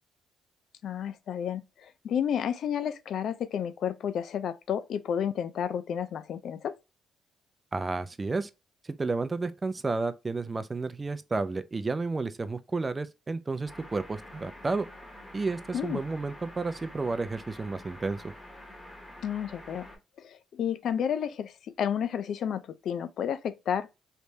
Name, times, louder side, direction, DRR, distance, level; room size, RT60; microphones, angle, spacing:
voice 1, 0.8-6.8 15.7-16.0 19.2-19.9 20.2-23.9, left 8 dB, 65° left, 0.4 m, -31 dB
voice 2, 7.7-8.5 8.8-14.9 15.3-18.3, right 3 dB, 25° right, 0.5 m, -31 dB
sound 1, 13.7-20.0, left 1 dB, 15° left, 1.8 m, -47 dB
3.3 x 3.1 x 2.8 m
cardioid pair, 90°, 0 cm